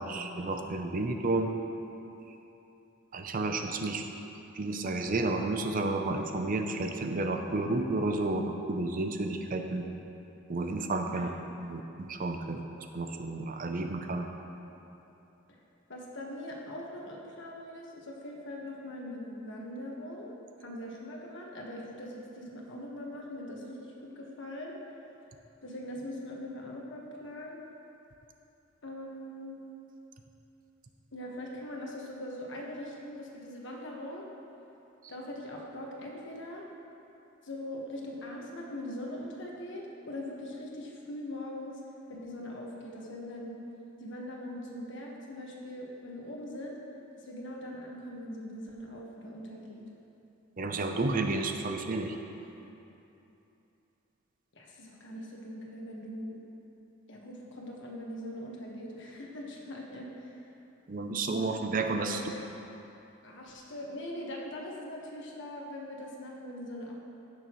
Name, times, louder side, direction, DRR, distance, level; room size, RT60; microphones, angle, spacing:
voice 1, 0.0-1.5 3.1-4.0 4.5-8.4 8.7-9.8 10.5-11.3 11.6-12.6 12.9-14.3 50.6-52.2 60.9-62.2, right 2 dB, 40° right, 5 dB, 0.5 m, -31 dB
voice 2, 15.9-20.3 20.6-24.7 25.6-27.6 28.8-29.6 31.1-34.3 35.1-36.6 37.4-41.8 42.1-43.6 44.0-46.8 47.1-49.8 54.5-56.4 57.1-60.4 63.2-66.9, left 1 dB, 60° left, -2 dB, 1.4 m, -41 dB
15.5 x 6.8 x 3.1 m, 2.9 s
head